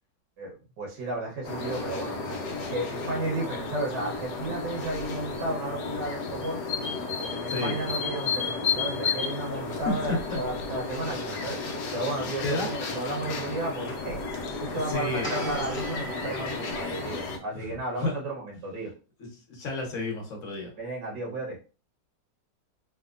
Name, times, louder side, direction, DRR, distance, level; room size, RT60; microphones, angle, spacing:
voice 1, 0.4-6.6 7.2-11.6 11.9-14.2 14.6-18.9 20.8-21.6, right 2 dB, 75° right, -1 dB, 1.6 m, -33 dB
sound 1, 1.4-17.4, left 4 dB, 70° left, 1.2 m, -33 dB
voice 2, 9.6-10.4 11.6-11.8 12.4-12.7 14.9-15.3 17.5-17.7 18.0-18.1 19.2-20.7, left 2 dB, 50° left, 1 dB, 1.2 m, -31 dB
sound 2, 15.2-17.1, equal, 10° left, 0.9 m, -37 dB
3.5 x 2.8 x 2.4 m, 0.33 s
omnidirectional pair, 1.9 m